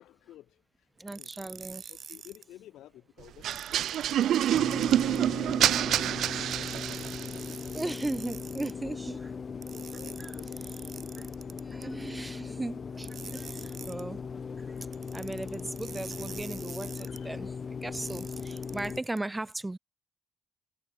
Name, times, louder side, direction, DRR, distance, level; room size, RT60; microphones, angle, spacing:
voice 1, 0.0-0.9 1.2-1.3 1.9-5.2 5.5-6.8 7.1-7.9 8.2-8.4 8.8-9.0 9.3-11.5 17.0-17.3, left 13 dB, 80° left, 4.1 m, -54 dB
voice 2, 1.0-1.9 7.7-9.3 10.2-10.4 11.2-11.3 11.6-14.2 15.1-17.5 17.8-19.8, right 2 dB, 15° right, 2.2 m, -37 dB
sound 1, 1.1-2.4 3.5-5.2 6.5-8.7 9.6-11.9 13.0-14.0 14.9-17.2 17.9-19.2, right 7 dB, 55° right, 3.5 m, -46 dB
sound 2, 3.4-7.4, right 11 dB, 75° right, 0.4 m, -27 dB
sound 3, 4.5-19.0, left 5 dB, 40° left, 3.6 m, -39 dB
cardioid pair, 90°, 0 cm